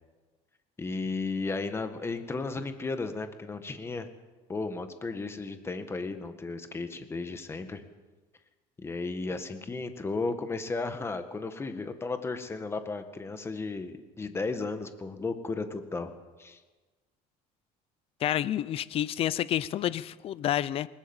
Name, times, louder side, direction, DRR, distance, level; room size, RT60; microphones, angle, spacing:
voice 1, 0.8-4.1 4.5-7.8 8.8-16.1 16.4-16.6, left 3 dB, 15° left, 8 dB, 1.8 m, -34 dB
voice 2, 18.2-20.9, left 12 dB, 40° left, 18 dB, 0.6 m, -29 dB
21.0 x 20.0 x 7.3 m, 1.3 s
cardioid pair, 145°, 15 cm